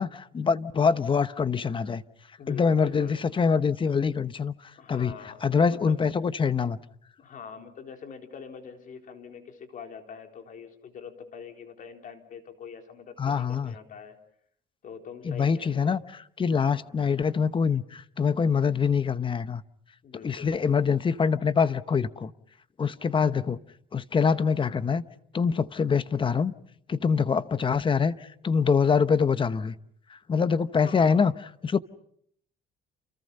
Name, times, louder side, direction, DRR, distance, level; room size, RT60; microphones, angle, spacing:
voice 1, 0.0-2.0 2.5-4.5 4.9-5.1 5.4-6.8 13.2-13.7 15.2-16.0 16.4-19.6 20.2-22.3 22.8-23.6 23.9-25.0 25.3-26.5 26.9-29.7 30.1-31.3 31.6-31.8, left 6 dB, 30° left, 1.0 m, -24 dB
voice 2, 2.4-3.2 4.7-6.0 7.2-14.2 14.8-16.0 16.5-16.8 20.0-20.6 30.8-31.3, left 6 dB, 50° left, 4.0 m, -44 dB
29.0 x 29.0 x 5.5 m
cardioid pair, 110°, 17 cm